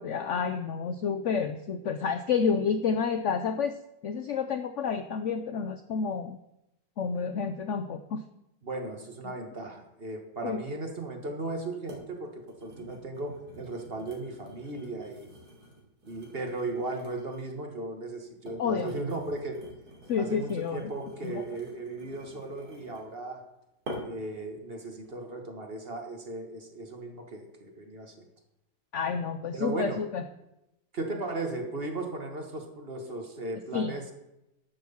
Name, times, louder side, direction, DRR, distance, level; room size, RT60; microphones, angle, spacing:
voice 1, 0.0-3.8 4.0-6.4 7.0-8.2 10.4-10.6 18.6-18.9 20.1-20.9 21.2-21.4 28.9-30.2 33.7-33.9, left 6 dB, 80° left, 10 dB, 0.6 m, -29 dB
voice 2, 8.6-15.3 16.0-19.7 20.2-23.4 24.0-28.2 29.5-30.0 30.9-34.1, right 2 dB, 35° right, 4 dB, 1.5 m, -36 dB
sound 1, 11.1-11.2 11.9-12.1 12.4-17.6 18.2-23.1 23.9-24.3 24.8-25.1, equal, 55° right, 3.4 m, -47 dB
12.0 x 6.1 x 7.0 m, 0.89 s
omnidirectional pair, 2.0 m